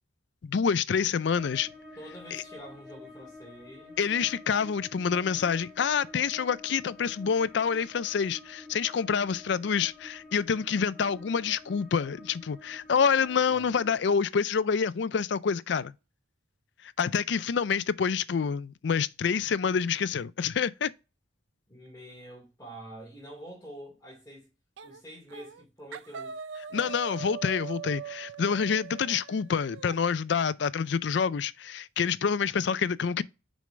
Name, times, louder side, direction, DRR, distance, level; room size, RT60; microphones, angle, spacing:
voice 1, 0.4-1.7 2.3-2.4 4.0-15.9 17.0-20.9 26.7-33.2, left 6 dB, 60° left, 0.4 m, -27 dB
sound 1, 1.3-14.0, left 2 dB, 5° right, 1.7 m, -49 dB
voice 2, 2.0-4.0 13.5-13.6 21.7-24.5 24.8-26.4 26.7-27.0 29.0-29.2, equal, 15° left, 2.5 m, -47 dB
sound 2, 24.8-25.0 25.3-25.6 25.9-30.0, right 7 dB, 70° right, 0.5 m, -41 dB
6.3 x 5.3 x 3.3 m
head